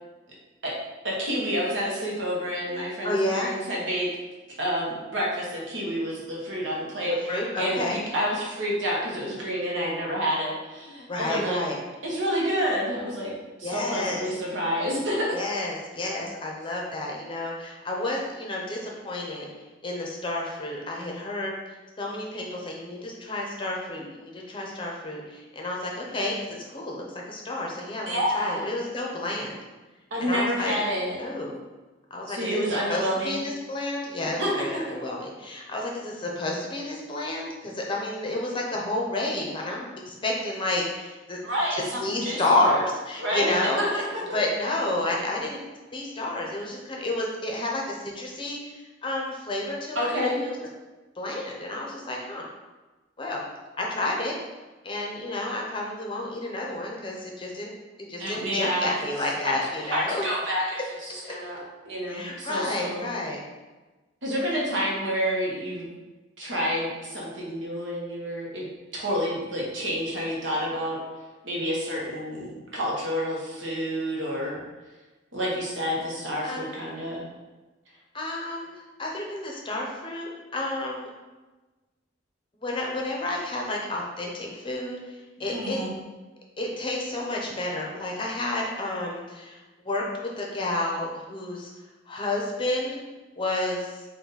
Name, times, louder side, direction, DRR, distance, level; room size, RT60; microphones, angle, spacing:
voice 1, 1.0-4.2 4.6-11.6 12.0-13.3 13.6-15.3 28.1-28.6 30.1-31.2 32.3-33.4 34.4-34.6 41.4-42.4 42.7-42.8 43.2-44.0 44.3-44.4 49.9-50.4 58.2-59.0 59.4-59.5 59.9-60.8 61.1-63.0 64.2-65.9 66.4-68.7 68.9-71.0 71.4-74.6 75.3-77.3 85.4-85.9, equal, 80° right, -4 dB, 1.2 m, -29 dB
voice 2, 3.0-3.5 7.3-8.0 11.1-11.8 13.6-14.3 15.3-19.5 19.8-21.5 22.0-29.6 30.2-30.8 31.2-31.6 32.1-41.4 42.0-44.0 44.3-45.6 45.9-50.6 51.2-52.5 53.2-53.4 53.8-54.4 54.8-57.7 58.1-60.2 61.2-61.3 62.1-63.4 76.4-76.7 78.1-81.1 82.6-85.8 86.6-89.6 89.8-91.7 92.1-93.0 93.4-94.0, left 2 dB, 25° left, -1 dB, 0.6 m, -30 dB
3.9 x 2.6 x 3.9 m, 1.2 s
head